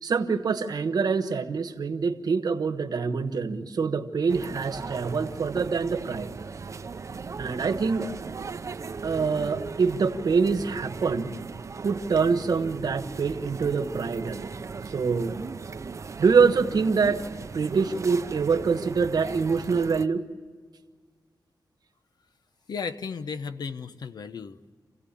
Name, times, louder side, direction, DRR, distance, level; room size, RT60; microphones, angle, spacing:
voice 1, 0.0-6.3 7.4-8.1 9.0-11.3 11.8-14.5 14.9-15.4 16.2-17.2 17.5-20.2, right 5 dB, 65° right, 9 dB, 1.3 m, -25 dB
sound 1, 4.3-20.1, right 5 dB, 45° right, 0.7 m, -38 dB
voice 2, 22.7-24.7, left 5 dB, 70° left, 10 dB, 0.9 m, -35 dB
29.0 x 16.5 x 8.5 m, 1.6 s
wide cardioid pair, 145°, 7 cm